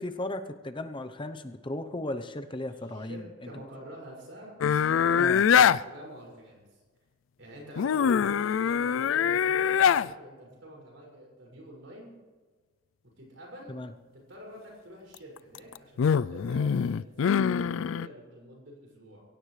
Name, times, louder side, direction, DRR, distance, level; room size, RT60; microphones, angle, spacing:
voice 1, 0.0-3.5 5.1-5.4 13.7-13.9, left 1 dB, 25° left, 8 dB, 0.8 m, -36 dB
voice 2, 2.8-6.8 7.4-12.1 13.2-19.2, right 1 dB, 80° right, -2 dB, 6.1 m, -47 dB
sound 1, 4.6-5.8 7.8-10.1 15.4-18.1, left 7 dB, 85° left, 0.4 m, -23 dB
23.5 x 16.5 x 3.3 m, 1.4 s
head